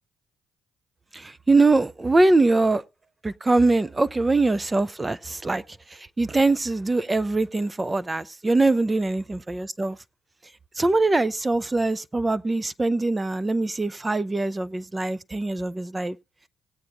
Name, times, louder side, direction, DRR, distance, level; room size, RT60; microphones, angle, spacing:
voice 1, 1.1-2.8 3.2-5.6 5.9-10.0 10.8-16.2, right 2 dB, 25° right, 0.5 m, -23 dB
18.5 x 8.6 x 2.6 m
hypercardioid pair, 45°, 0 cm